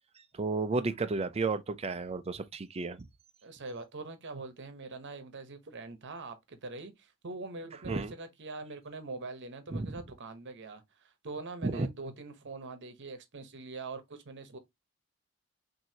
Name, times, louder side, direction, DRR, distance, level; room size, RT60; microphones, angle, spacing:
voice 1, 0.3-3.1 7.9-8.1 9.7-9.9 11.6-11.9, right 3 dB, 30° right, 0.4 m, -32 dB
voice 2, 3.4-14.6, right 3 dB, 55° right, 0.9 m, -43 dB
6.0 x 2.7 x 2.8 m
head